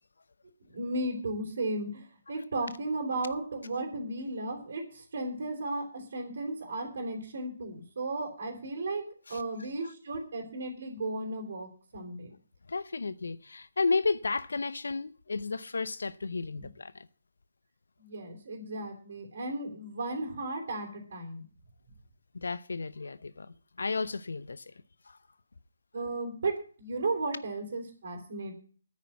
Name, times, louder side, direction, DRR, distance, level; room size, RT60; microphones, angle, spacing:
voice 1, 0.7-9.0 9.3-12.3 16.6-16.7 18.0-21.4 25.9-26.5 26.8-28.5, right 2 dB, 60° right, 3.6 m, -35 dB
voice 2, 12.7-17.1 22.3-24.7 25.1-25.2, left 4 dB, 75° left, 0.7 m, -33 dB
9.7 x 8.4 x 9.3 m
figure-of-eight pair, 140°, 0 cm